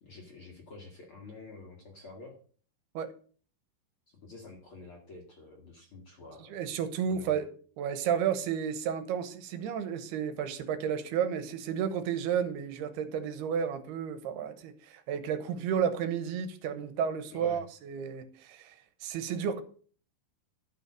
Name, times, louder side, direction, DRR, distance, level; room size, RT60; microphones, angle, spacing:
voice 1, 0.0-2.4 4.1-6.6 7.1-7.4 17.3-17.6, left 3 dB, 45° left, 1 dB, 2.0 m, -49 dB
voice 2, 6.5-7.5 7.8-19.6, right 8 dB, 80° right, 10 dB, 3.0 m, -32 dB
12.0 x 5.7 x 7.4 m, 0.43 s
omnidirectional pair, 4.7 m